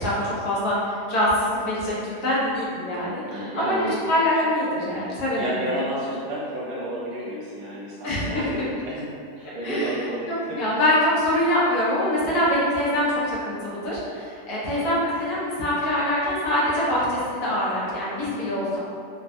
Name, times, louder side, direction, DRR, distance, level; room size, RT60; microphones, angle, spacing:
voice 1, 0.0-3.2 3.6-3.7 4.1-5.6 8.0-8.5 9.6-9.9 10.3-18.8, left 1 dB, 70° left, -8 dB, 1.2 m, -24 dB
voice 2, 3.3-3.9 5.4-9.0 9.4-10.6 14.7-15.1, right 1 dB, 65° right, -7 dB, 1.1 m, -31 dB
3.3 x 2.1 x 2.6 m, 2.4 s
omnidirectional pair, 1.8 m